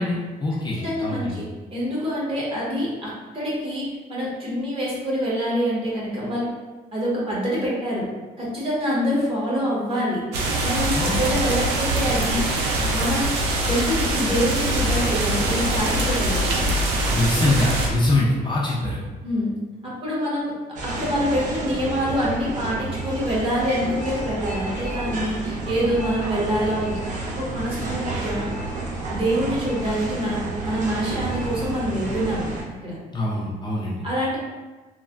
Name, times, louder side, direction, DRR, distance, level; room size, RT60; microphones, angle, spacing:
voice 1, 0.0-1.3 10.9-11.2 17.1-19.0 33.1-34.0, left 2 dB, 25° left, -5 dB, 0.5 m, -23 dB
voice 2, 0.8-6.5 6.9-8.1 8.4-10.2 10.6-12.4 12.9-13.3 13.6-16.8 19.2-19.5 19.8-20.5 20.8-27.0 27.2-28.5 29.1-32.5 32.8-33.0 34.0-34.4, equal, 35° right, -6 dB, 1.1 m, -26 dB
sound 1, 10.3-17.9, right 1 dB, 85° right, 0.5 m, -23 dB
sound 2, 20.8-32.6, right 2 dB, 50° right, 0.7 m, -30 dB
3.2 x 2.1 x 2.4 m, 1.2 s
cardioid pair, 110°, 17 cm